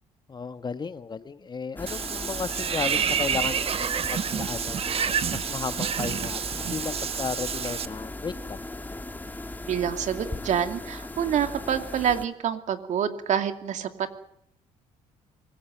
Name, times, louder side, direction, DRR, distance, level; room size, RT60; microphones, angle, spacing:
voice 1, 0.3-4.8 5.3-8.6, left 5 dB, 35° left, 12 dB, 1.2 m, -34 dB
sound 1, 1.8-12.3, left 2 dB, 15° left, 2.3 m, -38 dB
Water / Bathtub (filling or washing), 1.9-7.9, right 7 dB, 45° right, 1.2 m, -29 dB
voice 2, 9.7-14.1, right 8 dB, 65° right, 8 dB, 2.6 m, -27 dB
24.5 x 16.0 x 9.1 m, 0.73 s
cardioid pair, 95°, 13 cm